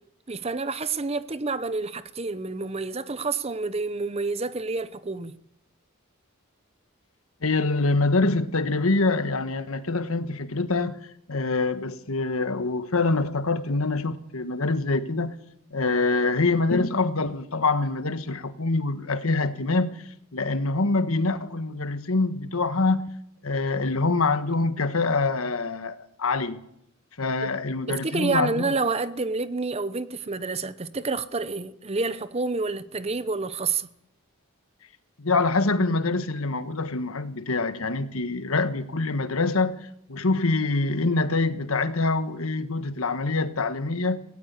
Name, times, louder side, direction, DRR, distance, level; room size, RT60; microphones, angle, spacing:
voice 1, 0.3-5.3 27.4-27.5 27.9-33.9, right 3 dB, 30° right, 0.8 m, -28 dB
voice 2, 7.4-11.0 11.3-15.4 15.7-20.0 20.3-23.1 23.4-26.6 27.2-28.7 35.2-44.2, left 3 dB, 75° left, 1.3 m, -25 dB
18.5 x 17.5 x 8.2 m
head